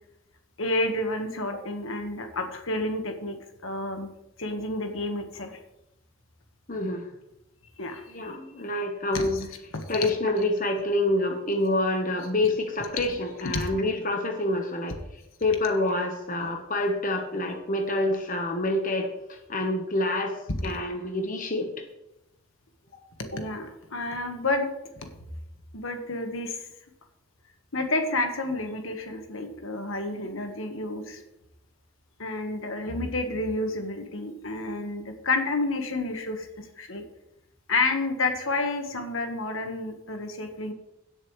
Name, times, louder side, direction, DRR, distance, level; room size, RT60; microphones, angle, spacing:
voice 1, 0.6-3.3 3.6-4.1 4.4-5.5 7.8-8.3 9.1-9.5 9.7-10.0 13.5-13.7 16.4-16.5 20.6-20.7 23.2-24.7 24.9-25.1 25.7-26.6 27.7-31.2 32.2-37.0 37.7-40.7, left 2 dB, 75° left, 5 dB, 1.5 m, -30 dB
voice 2, 6.7-7.1 8.1-9.4 9.9-15.0 15.4-19.1 19.5-20.4 20.6-21.7, left 1 dB, 40° left, 3 dB, 1.2 m, -27 dB
16.5 x 7.5 x 3.3 m, 0.87 s
head